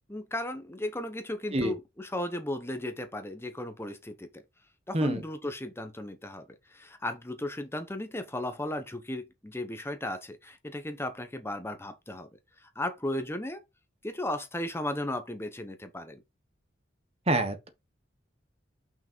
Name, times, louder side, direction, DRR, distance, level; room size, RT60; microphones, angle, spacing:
voice 1, 0.1-4.3 4.9-12.3 12.6-13.6 14.0-16.2, left 1 dB, 15° left, 0.8 m, -35 dB
voice 2, 17.3-17.7, right 1 dB, 30° right, 1.1 m, -26 dB
5.9 x 5.1 x 4.5 m
head